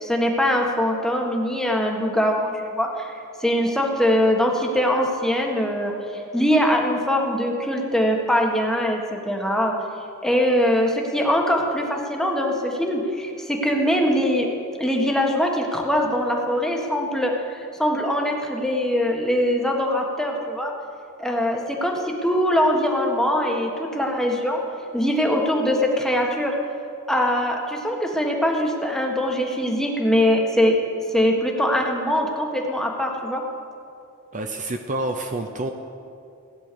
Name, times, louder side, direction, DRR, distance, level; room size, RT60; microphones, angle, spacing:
voice 1, 0.0-9.7 10.2-14.5 14.8-20.7 21.2-24.6 24.9-26.6 27.1-30.8 31.1-33.4, equal, ahead, 0 dB, 1.6 m, -22 dB
voice 2, 34.3-35.7, right 2 dB, 35° right, 5 dB, 0.7 m, -28 dB
16.5 x 10.0 x 6.9 m, 2.7 s
head